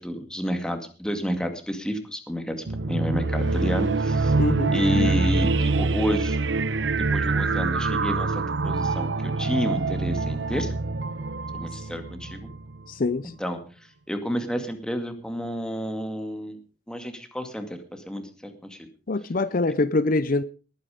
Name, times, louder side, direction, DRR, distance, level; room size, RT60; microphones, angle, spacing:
voice 1, 0.0-4.3 4.7-6.5 7.1-10.7 11.5-12.5 13.4-13.6 14.1-16.6 16.9-18.9, equal, 5° left, 2.2 m, -30 dB
sound 1, 2.7-12.9, right 3 dB, 80° right, 0.9 m, -25 dB
voice 2, 4.4-4.8 12.9-13.3 19.1-20.4, left 2 dB, 50° left, 0.6 m, -24 dB
19.0 x 9.5 x 5.0 m
head